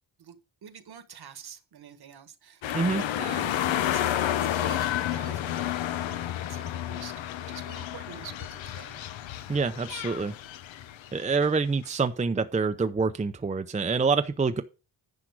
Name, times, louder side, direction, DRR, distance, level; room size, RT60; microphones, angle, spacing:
voice 1, 0.2-7.1 7.4-9.0, right 8 dB, 55° right, 1.5 m, -46 dB
sound 1, 2.6-11.5 11.8-11.9, left 12 dB, 80° left, 1.0 m, -31 dB
voice 2, 9.5-10.3 11.1-14.6, right 4 dB, 15° right, 0.7 m, -26 dB
10.0 x 5.8 x 4.8 m
cardioid pair, 95°, 45 cm